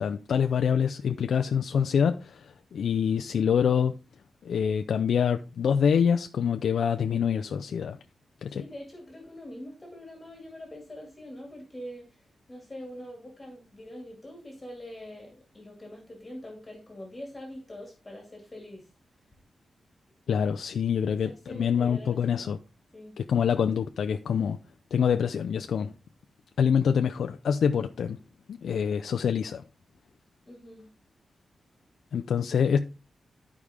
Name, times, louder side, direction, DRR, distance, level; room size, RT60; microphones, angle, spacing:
voice 1, 0.0-3.9 4.4-8.0 8.4-8.6 20.3-22.6 23.2-24.6 24.9-25.9 26.6-28.2 28.5-29.6 32.1-32.8, left 7 dB, 80° left, 0.4 m, -26 dB
voice 2, 8.5-18.9 21.4-22.5 22.9-23.1 30.5-30.9, left 1 dB, 15° left, 2.3 m, -44 dB
12.0 x 4.8 x 3.6 m
wide cardioid pair, 165°, 0 cm